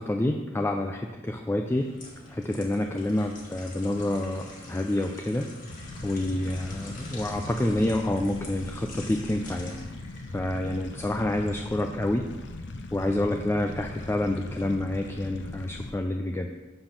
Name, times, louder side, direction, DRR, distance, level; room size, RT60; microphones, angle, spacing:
voice 1, 0.0-1.9 2.3-5.5 6.0-9.8 10.3-12.3 12.9-16.5, left 1 dB, 10° left, 3 dB, 0.3 m, -28 dB
sound 1, 1.6-11.6 12.0-12.2, left 2 dB, 45° left, 1.7 m, -45 dB
sound 2, 5.7-15.9, left 2 dB, 60° left, 0.7 m, -40 dB
6.9 x 5.8 x 5.7 m, 1.2 s
head